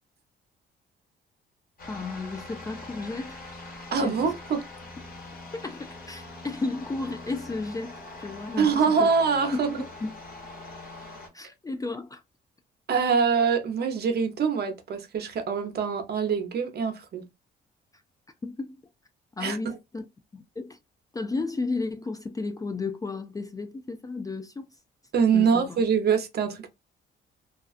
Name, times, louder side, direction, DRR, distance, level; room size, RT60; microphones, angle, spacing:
sound 1, 1.8-11.3, left 2 dB, 45° left, 1.1 m, -43 dB
voice 1, 1.9-3.4 4.0-4.2 5.5-9.1 9.5-9.6 10.0-10.1 11.3-12.2 18.4-18.8 19.3-20.1 20.3-20.8 21.1-24.7 25.3-25.8, left 3 dB, 20° left, 0.3 m, -33 dB
voice 2, 3.9-4.6 8.6-9.7 12.9-17.2 19.4-19.7 25.1-26.7, right 6 dB, 55° right, 0.7 m, -24 dB
2.4 x 2.3 x 2.4 m
cardioid pair, 90°, 20 cm